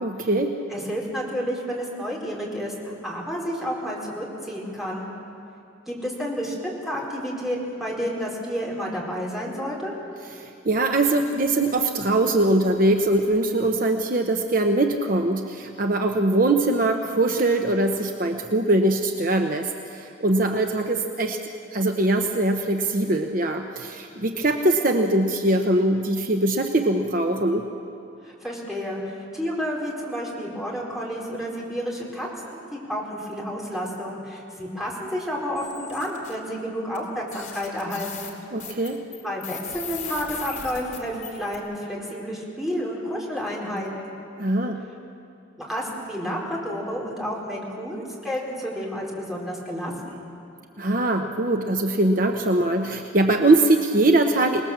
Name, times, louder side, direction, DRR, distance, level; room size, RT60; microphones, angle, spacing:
voice 1, 0.0-0.5 10.4-21.4 21.7-27.7 38.5-39.0 44.4-44.8 50.8-54.6, right 2 dB, 45° right, 4 dB, 0.9 m, -22 dB
voice 2, 0.7-2.7 3.0-5.1 5.9-9.9 28.2-38.3 38.7-38.9 39.2-44.2 45.6-50.2, equal, ahead, -4 dB, 4.4 m, -30 dB
sound 1, 35.6-36.3 36.9-37.0 37.3-41.6, left 7 dB, 45° left, 3.0 m, -38 dB
26.5 x 19.5 x 7.4 m, 2.6 s
head